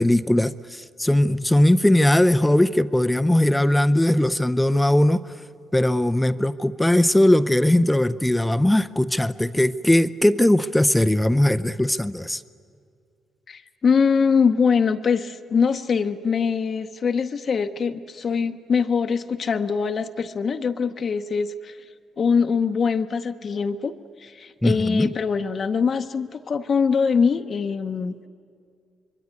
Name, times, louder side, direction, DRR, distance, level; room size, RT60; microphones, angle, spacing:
voice 1, 0.0-5.3 5.7-12.4 24.6-25.1, left 1 dB, 5° left, 14 dB, 0.6 m, -19 dB
voice 2, 13.5-21.8 22.2-28.3, left 5 dB, 45° left, 7 dB, 0.9 m, -23 dB
26.0 x 22.5 x 9.5 m, 2.4 s
cardioid pair, 90°, 0 cm